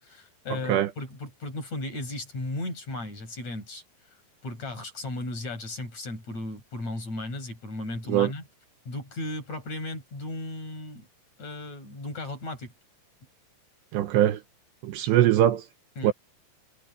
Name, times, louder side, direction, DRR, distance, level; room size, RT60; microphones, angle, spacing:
voice 1, 0.0-3.8 4.4-8.4 8.8-11.1 11.4-12.7 16.0-16.1, left 2 dB, 35° left, 8.2 m, -35 dB
voice 2, 13.9-14.4 14.8-15.6 16.0-16.1, right 12 dB, 75° right, 3.0 m, -21 dB
omnidirectional pair, 5.4 m